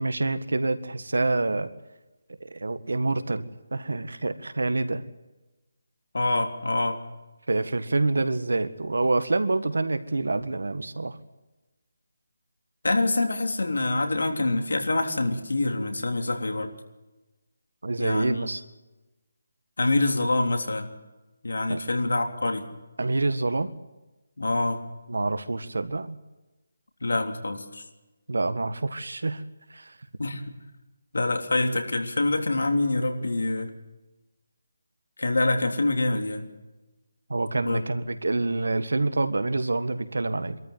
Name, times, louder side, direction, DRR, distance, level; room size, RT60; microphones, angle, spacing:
voice 1, 0.0-1.7 2.5-5.0 7.5-11.2 17.8-18.6 21.7-21.8 23.0-23.7 25.1-26.2 28.3-29.4 29.7-29.9 37.3-40.6, right 2 dB, 85° right, 11 dB, 1.7 m, -27 dB
voice 2, 6.1-7.0 12.8-16.7 18.0-18.4 19.8-20.9 21.4-22.7 24.4-24.8 27.0-27.8 30.2-30.4 31.1-33.7 35.2-36.5 37.6-37.8, left 2 dB, 80° left, 4 dB, 3.3 m, -25 dB
24.0 x 13.5 x 9.4 m, 1.1 s
figure-of-eight pair, 170°, 0 cm